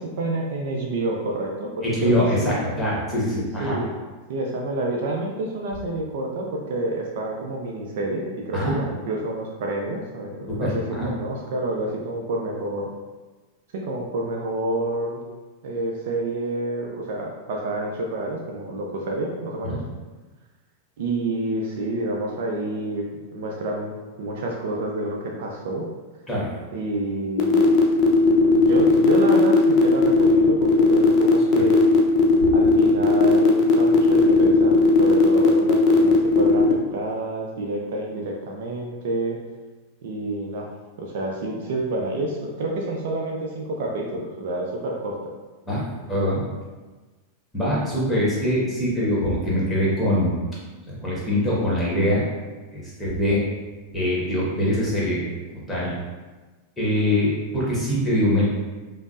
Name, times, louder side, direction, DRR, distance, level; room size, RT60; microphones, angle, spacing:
voice 1, 0.0-2.6 3.6-3.9 4.3-12.9 13.7-15.2 15.6-19.8 21.0-23.1 23.3-23.9 24.2-25.9 26.7-27.9 28.5-31.8 32.5-39.4 40.0-40.7 41.0-45.3, right 2 dB, 55° right, -1 dB, 0.4 m, -28 dB
voice 2, 1.8-3.8 8.5-8.8 10.5-11.1 19.6-19.8 26.3-26.5 45.6-45.8 46.1-46.4 47.5-50.4 50.9-52.3 52.7-53.4 53.9-55.2 55.7-55.9 56.8-58.4, left 1 dB, 5° left, -7 dB, 1.3 m, -23 dB
sound 1, 27.4-36.7, left 3 dB, 35° left, 0.5 m, -17 dB
5.1 x 2.0 x 2.4 m, 1.3 s
figure-of-eight pair, 90°, 0 cm